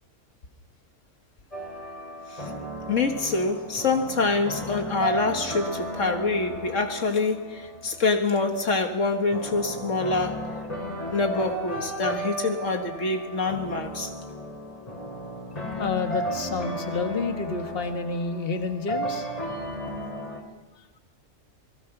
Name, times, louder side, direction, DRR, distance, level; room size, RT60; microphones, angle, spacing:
sound 1, 1.5-20.4, right 1 dB, 30° left, 3.2 m, -35 dB
voice 1, 2.9-10.5 11.1-14.1, left 3 dB, 70° left, 5 dB, 1.8 m, -26 dB
voice 2, 15.8-19.3, left 4 dB, 45° left, 5 dB, 1.7 m, -29 dB
27.5 x 20.5 x 5.9 m, 1.1 s
omnidirectional pair, 1.3 m